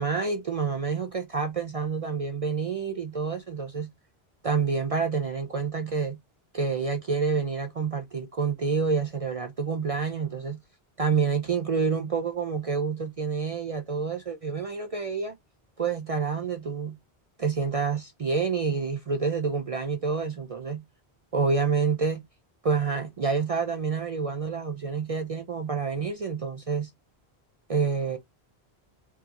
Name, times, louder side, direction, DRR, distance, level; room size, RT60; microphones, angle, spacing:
voice 1, 0.0-3.9 4.4-6.2 6.5-10.6 11.0-15.4 15.8-17.0 17.4-20.8 21.3-22.2 22.6-26.9 27.7-28.2, right 5 dB, 45° right, 0.5 m, -28 dB
4.6 x 2.6 x 2.8 m
omnidirectional pair, 1.1 m